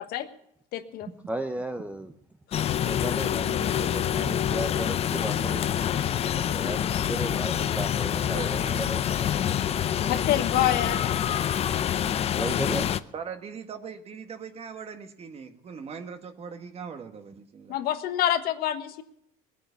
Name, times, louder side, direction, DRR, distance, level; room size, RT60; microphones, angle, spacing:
voice 1, 0.7-1.1 10.1-11.2 17.7-19.0, left 11 dB, 55° left, 9 dB, 1.4 m, -27 dB
voice 2, 1.3-2.1 2.8-9.0 12.3-12.9, right 1 dB, 10° right, 7 dB, 0.8 m, -35 dB
sound 1, 2.5-13.0, left 10 dB, 35° left, 0.6 m, -26 dB
voice 3, 8.1-9.2 11.5-11.7 13.1-17.8, right 6 dB, 35° right, 8 dB, 1.6 m, -40 dB
19.5 x 9.3 x 6.8 m, 0.74 s
supercardioid pair, 115°, 18 cm